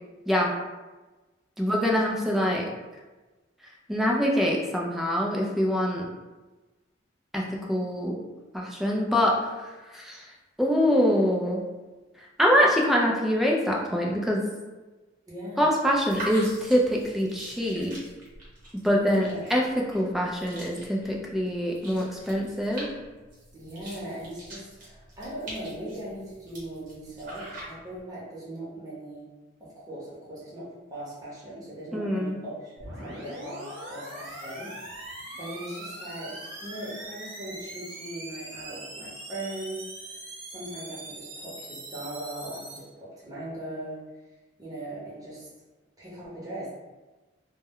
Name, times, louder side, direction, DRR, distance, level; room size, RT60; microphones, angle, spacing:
voice 1, 1.6-2.7 3.9-6.1 7.3-8.2 8.5-10.3 10.6-11.7 12.4-14.5 15.6-18.0 18.7-22.9 31.9-32.4, equal, ahead, -2 dB, 0.3 m, -25 dB
voice 2, 15.3-15.7 18.8-19.5 23.5-29.3 29.6-40.2 40.5-44.0 44.6-45.5 46.0-46.7, right 1 dB, 20° right, -8 dB, 0.8 m, -39 dB
sound 1, 15.9-28.0, right 1 dB, 45° right, 1.0 m, -44 dB
sound 2, 32.8-42.8, right 1 dB, 70° right, 0.7 m, -41 dB
2.2 x 2.1 x 3.5 m, 1.2 s
head